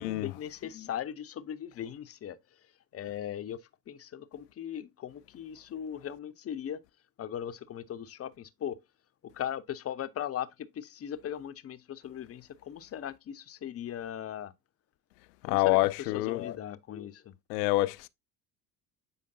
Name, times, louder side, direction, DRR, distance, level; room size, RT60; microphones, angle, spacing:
voice 1, 0.0-2.6 2.9-3.6 3.9-6.8 7.2-8.8 9.2-14.5 15.4-17.3, left 10 dB, 30° left, 0.6 m, -39 dB
voice 2, 15.4-16.5 17.5-18.1, left 18 dB, 70° left, 0.6 m, -27 dB
7.7 x 5.1 x 2.7 m
figure-of-eight pair, 55°, 50 cm